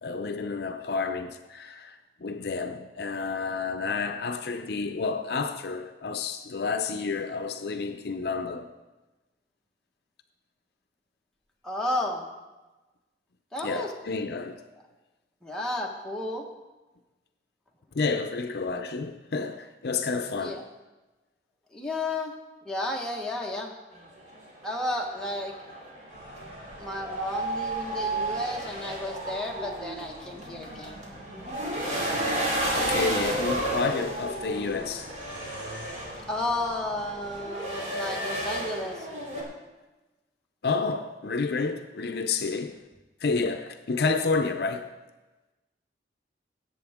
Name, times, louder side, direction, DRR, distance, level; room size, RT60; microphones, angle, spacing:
voice 1, 0.0-8.7 13.6-14.6 17.9-20.6 32.7-35.1 40.6-42.8 43.2-44.9, left 4 dB, 60° left, 0.5 m, -30 dB
voice 2, 11.6-12.3 13.5-13.9 15.4-16.5 20.4-20.6 21.7-22.3 22.6-23.7 24.6-25.5 26.8-31.0 36.3-39.1, left 1 dB, 5° left, 1.3 m, -32 dB
sound 1, 23.9-39.4, right 1 dB, 40° right, 2.5 m, -32 dB
sound 2, 26.1-37.4, right 1 dB, 75° right, 2.7 m, -49 dB
18.0 x 7.8 x 3.6 m
head